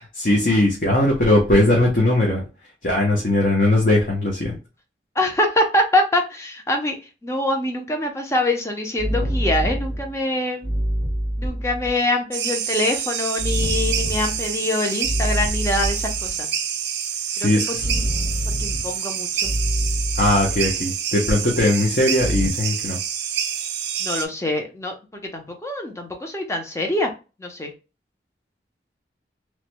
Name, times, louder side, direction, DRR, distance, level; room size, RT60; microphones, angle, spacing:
voice 1, 0.2-2.4 2.8-4.6 17.4-17.6 20.2-23.0, left 1 dB, 50° left, -1 dB, 0.7 m, -19 dB
voice 2, 5.2-7.0 7.2-10.7 11.4-16.5 17.4-18.0 18.5-19.5 24.0-27.1 27.4-27.7, left 1 dB, 15° left, 3 dB, 0.6 m, -24 dB
sound 1, 9.0-10.2 10.6-12.0 13.4-14.6 15.0-16.3 17.8-19.0 19.4-20.7 22.2-22.5, equal, 70° left, 1.3 m, -25 dB
sound 2, 12.3-24.3, right 8 dB, 85° right, 0.5 m, -27 dB
3.1 x 2.1 x 3.0 m, 0.31 s
head